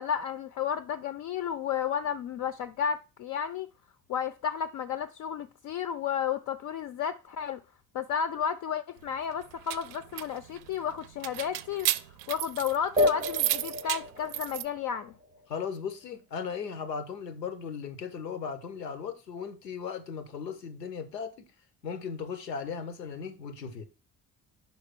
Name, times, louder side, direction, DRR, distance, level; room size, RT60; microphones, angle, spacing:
voice 1, 0.0-3.7 4.1-7.6 7.9-11.9 12.3-15.1, left 8 dB, 40° left, 0.4 m, -32 dB
sound 1, 9.4-14.6, right 13 dB, 65° right, 0.5 m, -33 dB
sound 2, 13.0-15.9, left 2 dB, 15° right, 0.4 m, -31 dB
voice 2, 15.5-21.5 21.8-23.8, left 6 dB, 85° left, 0.7 m, -37 dB
5.4 x 4.8 x 6.0 m
figure-of-eight pair, 45°, 49 cm